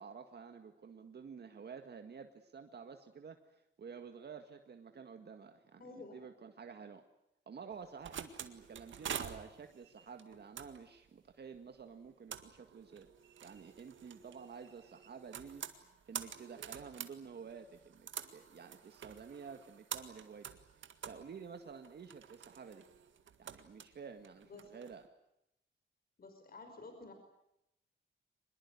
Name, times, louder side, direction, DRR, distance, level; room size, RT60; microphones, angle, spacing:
voice 1, 0.0-3.4 3.8-7.1 7.5-13.1 13.4-15.6 16.1-20.5 21.0-22.9 23.4-25.0, right 6 dB, 60° right, 6 dB, 1.9 m, -51 dB
voice 2, 5.8-6.2 24.5-24.7 26.2-27.1, left 3 dB, 50° left, 6 dB, 5.4 m, -51 dB
sound 1, 7.7-24.9, right 8 dB, 80° right, 1.9 m, -48 dB
24.0 x 21.0 x 9.6 m, 0.83 s
cardioid pair, 95°, 20 cm